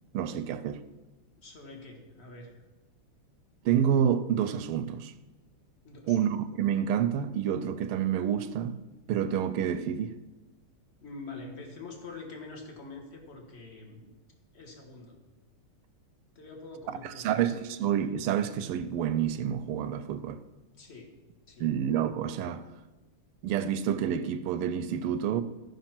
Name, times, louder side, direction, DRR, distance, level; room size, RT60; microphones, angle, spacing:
voice 1, 0.1-0.8 3.6-5.1 6.1-8.7 9.1-10.2 17.0-20.4 21.6-22.6 23.4-25.4, right 9 dB, 85° right, 1.5 m, -28 dB
voice 2, 1.4-2.6 5.8-6.2 11.0-14.1 14.5-15.1 16.3-17.5 20.8-21.1 21.5-21.7, left 3 dB, 30° left, 1.6 m, -45 dB
13.5 x 5.4 x 5.9 m
omnidirectional pair, 2.4 m